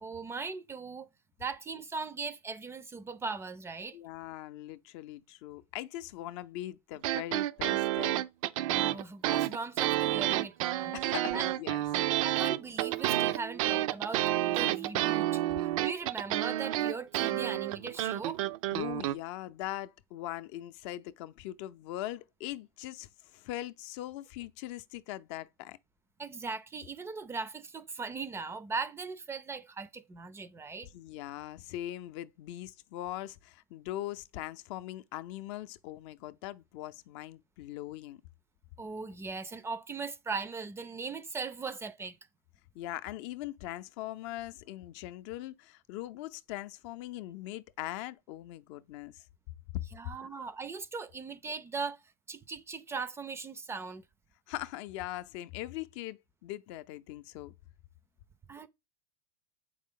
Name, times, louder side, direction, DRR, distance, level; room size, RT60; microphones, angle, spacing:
voice 1, 0.0-1.1 1.4-4.0 8.7-10.9 11.3-11.5 12.2-15.4 15.8-18.4 26.2-30.9 38.8-42.2 49.9-52.0 52.3-54.0 58.5-58.7, right 4 dB, 15° right, 0.4 m, -39 dB
voice 2, 3.9-8.2 10.9-11.8 18.7-25.8 30.8-38.2 42.7-49.2 50.3-50.4 54.5-57.5, left 14 dB, 55° left, 0.5 m, -41 dB
sound 1, 7.0-19.1, right 14 dB, 65° right, 0.5 m, -30 dB
7.2 x 5.0 x 3.7 m
supercardioid pair, 130°, 18 cm